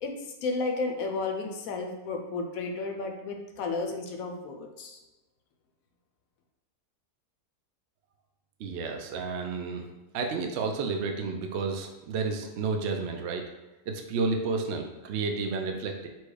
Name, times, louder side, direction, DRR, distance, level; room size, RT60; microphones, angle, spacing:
voice 1, 0.0-5.0, left 3 dB, 70° left, 3 dB, 1.0 m, -33 dB
voice 2, 8.6-9.8 10.1-13.4 13.9-16.1, right 4 dB, 70° right, 3 dB, 0.6 m, -31 dB
4.5 x 2.2 x 4.7 m, 1.1 s
omnidirectional pair, 1.6 m